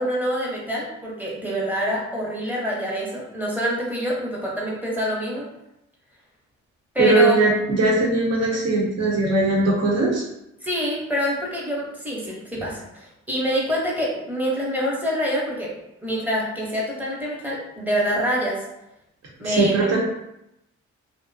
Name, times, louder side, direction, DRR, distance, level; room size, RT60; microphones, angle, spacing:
voice 1, 0.0-5.5 6.9-7.4 10.6-15.7 16.0-18.6 19.4-20.0, equal, 5° right, -4 dB, 0.8 m, -26 dB
voice 2, 7.0-10.2 19.4-20.0, right 2 dB, 60° right, -2 dB, 0.9 m, -20 dB
2.5 x 2.1 x 2.6 m, 0.85 s
cardioid pair, 90°, 30 cm